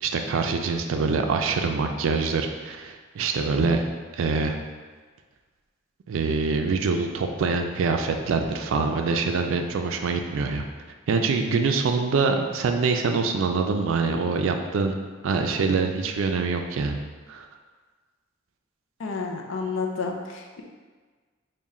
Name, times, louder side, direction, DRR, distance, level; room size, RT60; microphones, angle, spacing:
voice 1, 0.0-3.9 4.1-4.5 6.1-10.6 11.1-14.9 15.2-17.0 17.3-17.4, right 4 dB, 85° right, 5 dB, 0.4 m, -24 dB
voice 2, 19.0-20.6, left 4 dB, 75° left, 2 dB, 0.5 m, -30 dB
3.6 x 2.2 x 4.1 m, 1.5 s
head